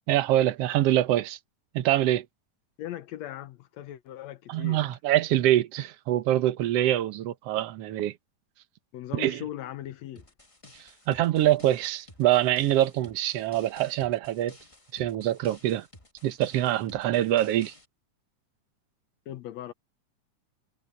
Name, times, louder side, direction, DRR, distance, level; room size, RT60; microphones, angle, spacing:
voice 1, 0.1-1.4 1.7-2.2 4.5-8.1 9.1-9.4 11.1-14.6 14.9-15.9 16.2-17.7, right 13 dB, 65° right, 1.7 m, -24 dB
voice 2, 2.8-4.8 8.9-10.2 19.3-19.7, left 12 dB, 70° left, 1.8 m, -39 dB
sound 1, 10.2-17.9, left 2 dB, 15° left, 1.2 m, -53 dB
omnidirectional pair, 3.6 m